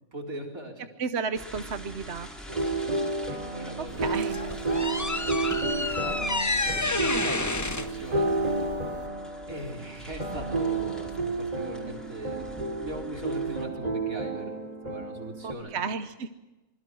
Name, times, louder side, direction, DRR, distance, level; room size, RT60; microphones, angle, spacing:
voice 1, 0.1-0.9 2.6-2.9 3.3-8.3 9.5-15.8, right 1 dB, 75° right, 1 dB, 4.8 m, -40 dB
voice 2, 1.0-2.3 3.8-4.4 15.4-16.3, right 5 dB, 55° right, 9 dB, 1.1 m, -32 dB
sound 1, 1.3-13.7, right 1 dB, ahead, 4.6 m, -45 dB
sound 2, 2.5-15.5, right 3 dB, 25° right, 2.8 m, -31 dB
sound 3, 3.9-9.1, left 2 dB, 15° left, 0.7 m, -30 dB
25.5 x 21.5 x 6.3 m, 1.1 s
omnidirectional pair, 1.5 m